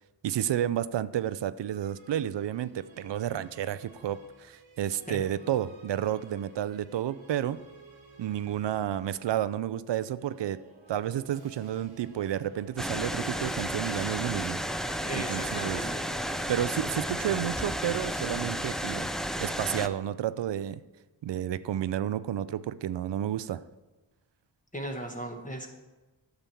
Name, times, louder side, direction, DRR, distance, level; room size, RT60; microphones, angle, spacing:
voice 1, 0.2-7.6 8.2-10.6 10.9-14.6 15.1-15.8 16.5-19.1 19.4-20.8 21.2-23.6, right 11 dB, 70° right, 15 dB, 0.5 m, -31 dB
sound 1, 1.6-9.5 10.1-18.0, right 2 dB, 85° right, 1.4 m, -53 dB
sound 2, 12.8-19.9, equal, ahead, 0.5 m, -32 dB
voice 2, 15.0-16.5 24.7-25.7, right 1 dB, 15° left, 2 dB, 1.1 m, -38 dB
9.0 x 6.8 x 4.4 m, 1.1 s
cardioid pair, 45°, 45 cm